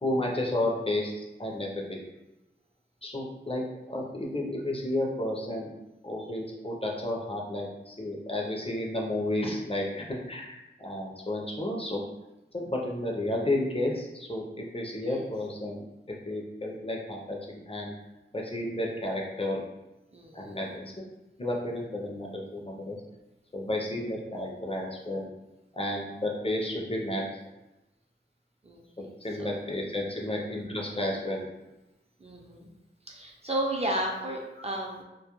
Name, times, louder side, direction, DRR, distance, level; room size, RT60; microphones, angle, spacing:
voice 1, 0.0-2.0 3.0-5.7 6.0-12.0 12.5-17.9 18.3-19.6 20.3-20.9 21.4-23.0 23.5-25.3 25.7-27.2 29.0-31.5 34.6-34.7, left 1 dB, 30° left, -1 dB, 0.5 m, -32 dB
voice 2, 20.1-20.6 28.6-29.1 29.4-29.5 32.2-32.7 33.1-35.0, right 1 dB, 30° right, -1 dB, 0.5 m, -33 dB
2.2 x 2.1 x 2.9 m, 0.97 s
wide cardioid pair, 40°, 20 cm